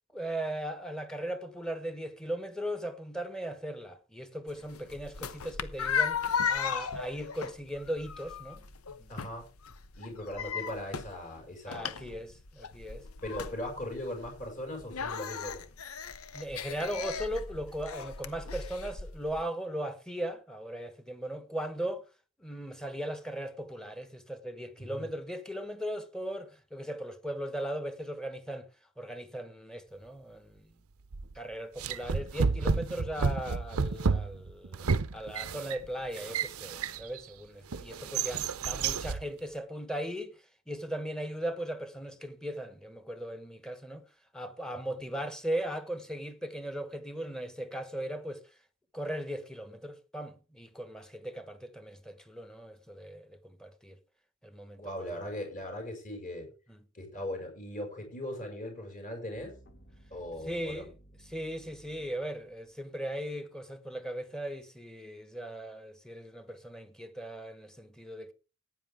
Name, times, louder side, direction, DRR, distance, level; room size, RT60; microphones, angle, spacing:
voice 1, 0.1-6.2 6.5-9.1 11.7-13.0 16.3-22.0 22.4-28.7 29.0-30.7 31.3-34.9 35.1-40.3 40.7-44.0 44.3-48.4 48.9-54.0 54.4-55.1 60.5-60.9 61.3-68.3, right 1 dB, 5° left, 1.3 m, -38 dB
sound 1, 4.5-19.4, left 6 dB, 90° left, 0.9 m, -36 dB
voice 2, 9.1-9.5 9.9-11.9 13.2-15.6 24.8-25.1 54.7-56.5 56.9-59.6 60.1-60.8, left 1 dB, 40° left, 6.0 m, -39 dB
sound 2, 31.1-31.4 31.8-37.2 37.7-39.3, right 5 dB, 85° right, 0.7 m, -31 dB
sound 3, 59.3-63.4, right 1 dB, 55° left, 1.6 m, -58 dB
15.0 x 9.6 x 3.6 m
head